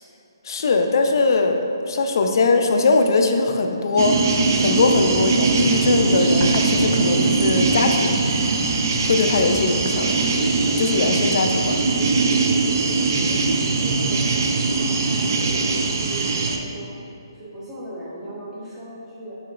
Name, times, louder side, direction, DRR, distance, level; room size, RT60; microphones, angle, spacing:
voice 1, 0.4-4.2 4.6-8.2 9.1-10.2 10.8-11.8, left 3 dB, 55° left, 5 dB, 0.3 m, -21 dB
sound 1, 4.0-16.6, right 3 dB, 50° right, 0.3 m, -21 dB
sound 2, 6.0-11.0, equal, 10° left, 1.3 m, -38 dB
voice 2, 13.2-14.4 14.7-16.9 17.3-19.4, right 1 dB, 10° right, -8 dB, 0.9 m, -37 dB
4.7 x 3.9 x 2.3 m, 2.8 s
hypercardioid pair, 150°, 2 cm